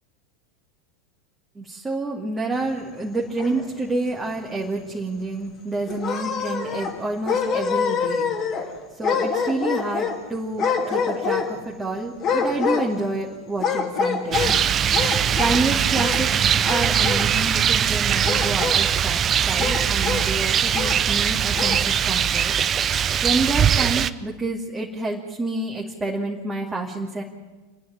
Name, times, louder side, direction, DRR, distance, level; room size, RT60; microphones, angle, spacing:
voice 1, 1.5-8.3 9.0-14.6 15.4-16.3 16.6-22.5 22.9-27.2, right 2 dB, 15° right, -3 dB, 2.4 m, -28 dB
sound 1, 3.0-3.9 4.4-4.5 4.8-4.9 5.8-7.0 7.2-8.7 9.0-10.2 10.6-11.7 12.2-13.2 13.6-14.6 14.9-15.6 15.9-16.4 16.6-17.3 18.2-18.8 19.6-20.3 20.7-21.0 21.5-21.8, left 6 dB, 35° left, 2.5 m, -26 dB
Rain, 14.3-24.1, right 8 dB, 30° right, 0.7 m, -21 dB
28.0 x 10.5 x 9.7 m, 1.3 s
figure-of-eight pair, 85°, 0 cm